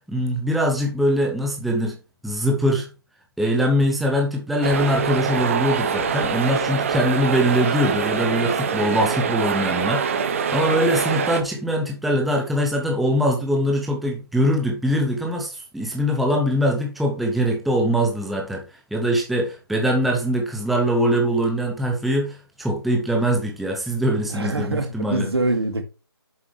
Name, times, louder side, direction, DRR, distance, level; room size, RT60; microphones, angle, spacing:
voice 1, 0.1-2.0 2.2-2.9 3.4-18.6 18.9-25.3, equal, ahead, 0.7 m, -22 dB
sound 1, 4.6-11.4, right 6 dB, 30° right, 1.0 m, -24 dB
voice 2, 24.3-25.8, right 2 dB, 80° right, 2.3 m, -24 dB
8.2 x 7.3 x 3.2 m
figure-of-eight pair, 160°, 13 cm